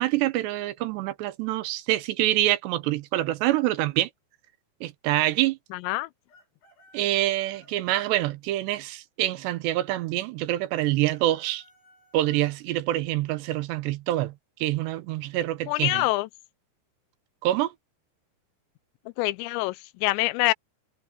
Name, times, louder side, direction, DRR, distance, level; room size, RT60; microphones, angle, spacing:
voice 1, 0.0-4.1 4.8-5.6 6.9-11.6 12.1-14.3 14.6-16.0 17.4-17.7, right 15 dB, 80° right, 3.0 m, -26 dB
voice 2, 5.7-6.1 15.7-16.3 19.2-20.5, left 20 dB, 90° left, 2.9 m, -25 dB
Chicken rooster, 6.3-8.1 10.8-12.6, left 2 dB, 70° left, 10.0 m, -57 dB
omnidirectional pair, 5.1 m